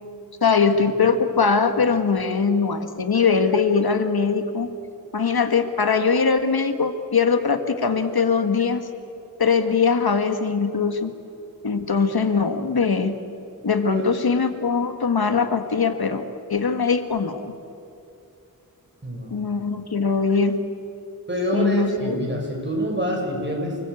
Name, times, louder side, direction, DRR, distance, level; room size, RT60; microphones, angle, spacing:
voice 1, 0.4-4.7 5.1-8.8 9.4-11.1 11.6-13.1 13.6-17.5 19.3-20.6 21.5-22.3, left 5 dB, 80° left, 8 dB, 1.6 m, -21 dB
voice 2, 13.9-14.2 19.0-19.4 21.3-23.8, equal, 30° right, 0 dB, 6.9 m, -26 dB
29.5 x 21.0 x 8.5 m, 2.6 s
wide cardioid pair, 80°, 36 cm